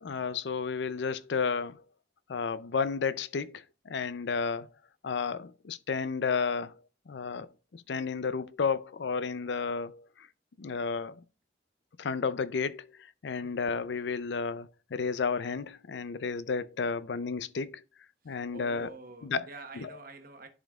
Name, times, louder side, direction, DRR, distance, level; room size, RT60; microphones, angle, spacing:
voice 1, 0.0-1.8 2.3-4.7 5.0-6.7 7.1-10.0 10.6-11.2 12.0-12.9 13.2-17.8 18.3-18.9 19.2-19.4, left 5 dB, 75° left, 0.5 m, -32 dB
voice 2, 18.2-20.5, right 3 dB, 50° right, 1.0 m, -48 dB
11.0 x 5.1 x 2.3 m
head